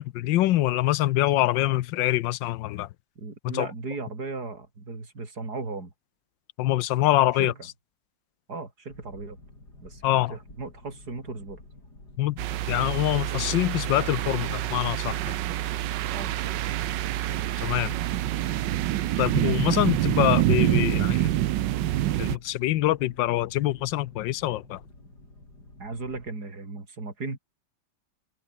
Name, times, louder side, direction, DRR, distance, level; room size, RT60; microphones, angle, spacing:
voice 1, 0.0-2.9 3.4-3.7 6.6-7.5 10.0-10.3 12.2-12.4 12.7-15.4 17.6-18.0 19.2-21.3 22.2-24.8, left 15 dB, 80° left, 1.3 m, -25 dB
voice 2, 3.2-5.9 7.3-7.5 8.5-9.4 9.8-10.0 10.3-11.6 16.1-16.5 25.8-27.4, right 3 dB, 55° right, 5.1 m, -36 dB
Boat Water vehicle, 8.9-26.3, left 2 dB, 55° left, 8.6 m, -51 dB
sound 1, 12.4-22.4, right 13 dB, 70° right, 1.4 m, -26 dB
omnidirectional pair, 2.0 m